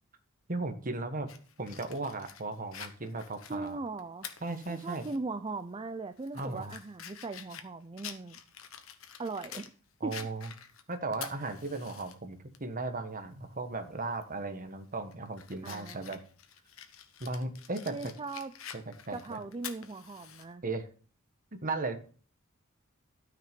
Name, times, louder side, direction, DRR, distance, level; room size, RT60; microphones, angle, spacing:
voice 1, 0.5-1.3 1.6-3.8 4.4-5.1 6.3-6.7 10.0-10.5 10.9-16.2 17.2-18.1 18.7-19.4 20.6-20.8 21.5-22.0, right 3 dB, 40° right, 7 dB, 1.4 m, -36 dB
Fire, 1.3-5.2 5.6-5.7 6.2-9.7 10.1-12.1 12.5-12.6 14.1-14.4 14.9-20.5, left 8 dB, 70° left, 1.2 m, -48 dB
voice 2, 3.5-4.3 4.7-8.4 9.2-9.7 10.0-10.1 15.6-16.2 17.9-18.5 19.1-20.6, right 3 dB, 25° right, 9 dB, 0.5 m, -39 dB
12.5 x 5.9 x 5.2 m, 0.40 s
head